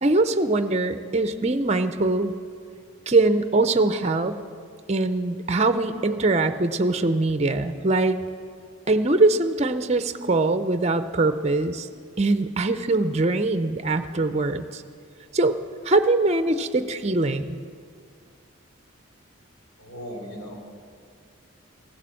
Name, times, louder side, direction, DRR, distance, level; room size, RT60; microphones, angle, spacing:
voice 1, 0.0-2.3 3.1-4.4 4.9-8.2 8.9-11.9 12.2-14.8 15.3-15.6 15.8-17.6, right 2 dB, 30° right, 10 dB, 0.6 m, -22 dB
voice 2, 19.8-20.5, equal, 85° left, 0 dB, 3.8 m, -37 dB
16.0 x 11.5 x 7.6 m, 2.2 s
head